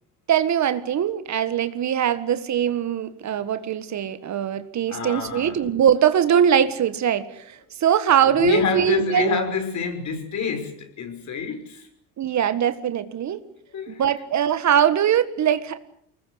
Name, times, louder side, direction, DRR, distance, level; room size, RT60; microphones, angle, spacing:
voice 1, 0.3-9.4 12.2-13.4 13.9-15.8, right 9 dB, 45° right, 12 dB, 1.7 m, -21 dB
voice 2, 4.9-5.6 8.2-11.9 13.7-14.0, left 5 dB, 50° left, 7 dB, 5.8 m, -27 dB
24.0 x 20.0 x 8.1 m, 0.67 s
supercardioid pair, 95°, 37 cm